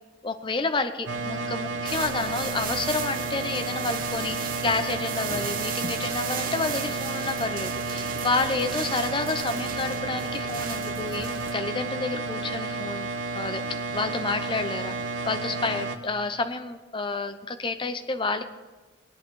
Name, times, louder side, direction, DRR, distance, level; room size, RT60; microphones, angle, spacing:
voice 1, 0.2-13.1 13.3-15.0 15.3-18.4, left 3 dB, 25° left, 8 dB, 0.7 m, -29 dB
sound 1, 1.1-16.0, right 3 dB, 70° right, 1.0 m, -32 dB
sound 2, 1.9-11.5, right 7 dB, 45° right, 0.7 m, -36 dB
19.5 x 8.9 x 4.7 m, 1.3 s
head